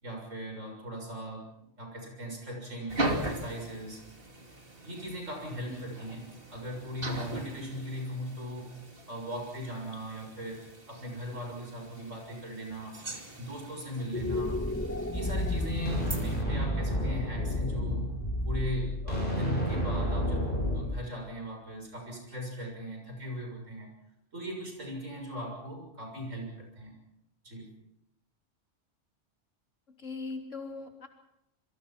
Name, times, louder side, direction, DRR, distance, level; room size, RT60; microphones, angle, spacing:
voice 1, 0.0-4.0 4.8-8.7 9.1-13.0 13.4-14.6 15.1-18.1 18.4-23.9 24.3-26.9 27.4-27.7, equal, 85° right, 2 dB, 7.1 m, -39 dB
sound 1, 2.9-16.4, right 1 dB, 45° right, 3.0 m, -40 dB
sound 2, 14.0-20.4, left 1 dB, 10° left, 1.5 m, -35 dB
sound 3, 15.2-20.8, equal, 40° left, 7.3 m, -31 dB
voice 2, 30.0-31.1, left 3 dB, 80° left, 3 dB, 3.8 m, -40 dB
26.5 x 23.0 x 5.9 m, 0.85 s
omnidirectional pair, 1.3 m